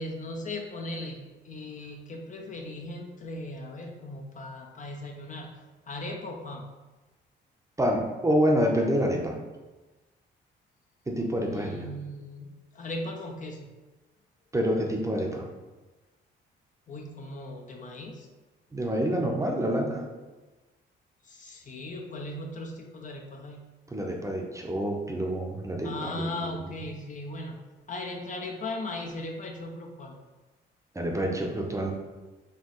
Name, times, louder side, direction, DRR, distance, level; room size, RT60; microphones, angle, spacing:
voice 1, 0.0-5.5 5.9-6.7 11.5-13.7 16.9-18.3 21.2-23.6 25.8-27.6 27.9-30.2, left 1 dB, 40° left, 2 dB, 0.6 m, -38 dB
voice 2, 7.8-9.4 11.1-11.9 14.5-15.5 18.7-20.0 23.9-26.5 30.9-31.9, equal, 15° right, 1 dB, 0.7 m, -27 dB
4.6 x 2.9 x 3.0 m, 1.2 s
cardioid pair, 90°, 20 cm